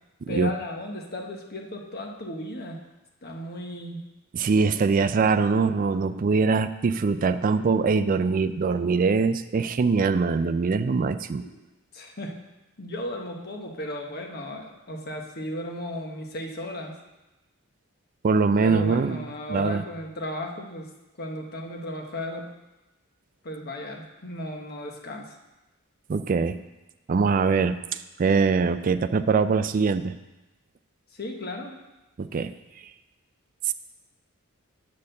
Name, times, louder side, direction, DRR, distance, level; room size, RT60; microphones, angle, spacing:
voice 1, 0.3-2.8 3.2-4.0 11.4-11.5 11.9-12.4 12.8-17.0 18.6-20.9 21.2-22.4 23.4-25.4 31.1-31.7, left 1 dB, 45° left, 2 dB, 1.0 m, -35 dB
voice 2, 4.3-11.4 18.2-19.8 26.1-26.6 27.1-27.8 28.2-30.2 32.2-32.5 33.7-33.8, right 4 dB, 40° right, 11 dB, 0.3 m, -23 dB
8.4 x 4.4 x 6.5 m, 1.0 s
head